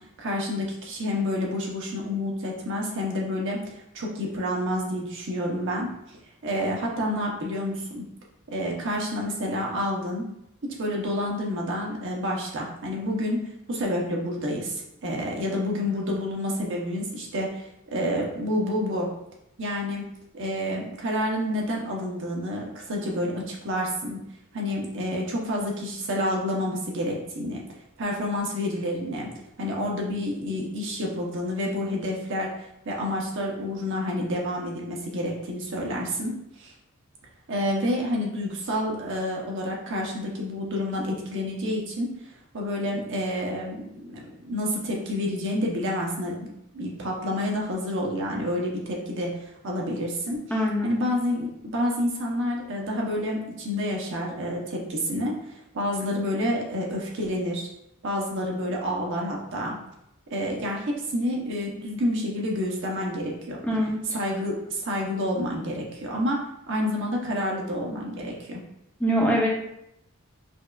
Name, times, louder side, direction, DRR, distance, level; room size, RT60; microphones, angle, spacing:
voice 1, 0.2-3.6 3.9-5.9 6.4-8.1 8.5-10.3 10.6-13.4 13.7-19.1 19.6-20.1 20.3-24.2 24.5-27.6 28.0-29.3 29.6-32.5 32.9-36.7 37.5-42.1 42.5-46.5 46.7-50.4 50.8-57.7 58.0-59.8 60.3-63.6 64.1-68.6, left 1 dB, 60° right, -1 dB, 0.8 m, -29 dB
voice 2, 50.5-51.0 63.6-64.0 69.0-69.5, equal, 5° left, -3 dB, 0.5 m, -23 dB
5.2 x 2.4 x 2.3 m, 0.80 s
head